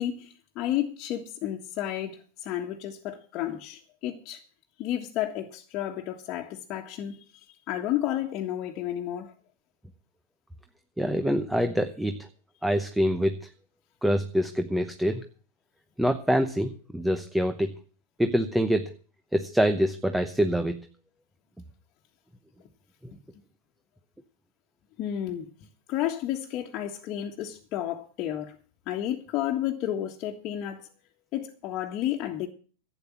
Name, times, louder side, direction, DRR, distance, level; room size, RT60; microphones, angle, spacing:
voice 1, 0.0-4.4 4.8-9.3 25.0-25.5 25.9-28.5 28.8-30.9 31.3-32.5, left 12 dB, 40° left, 1.5 m, -32 dB
voice 2, 11.0-12.3 12.6-13.3 14.0-15.3 16.0-17.7 18.2-18.9 19.3-20.9, equal, 5° right, 0.9 m, -25 dB
11.5 x 8.9 x 7.3 m
hypercardioid pair, 115°, 0 cm